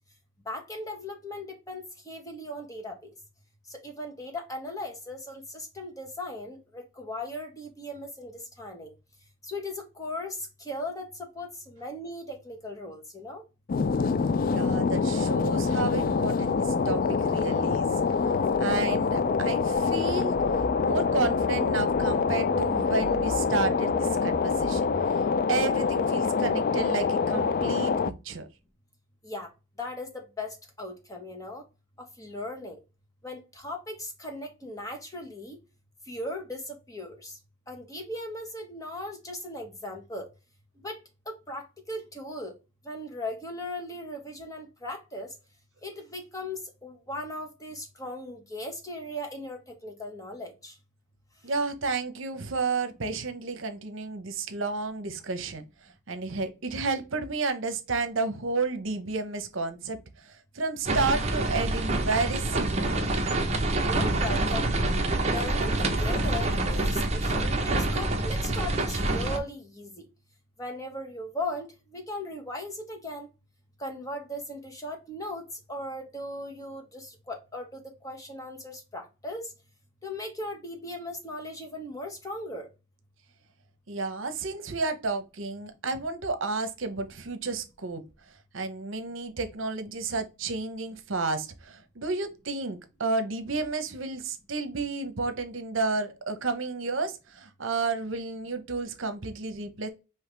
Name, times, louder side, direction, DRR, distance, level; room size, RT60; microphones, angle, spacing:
voice 1, 0.4-3.1 3.7-8.9 9.4-13.4 29.2-29.5 29.8-31.6 32.0-32.8 33.2-35.6 36.1-37.3 37.7-40.3 40.8-41.0 41.3-42.5 42.8-45.3 45.8-50.7 63.8-64.8 65.1-70.0 70.6-73.3 73.8-79.5 80.0-82.7, left 1 dB, 15° left, 1.2 m, -38 dB
sound 1, 13.7-28.1, left 5 dB, 45° left, 0.3 m, -25 dB
voice 2, 14.4-17.9 18.6-20.3 20.8-25.2 25.5-28.5 51.4-55.6 56.1-63.1 83.9-88.0 88.5-99.9, right 3 dB, 70° right, 0.9 m, -31 dB
sound 2, 19.7-25.1, equal, 80° left, 1.5 m, -41 dB
sound 3, 60.8-69.4, right 2 dB, 35° right, 0.8 m, -26 dB
5.6 x 2.9 x 3.3 m
head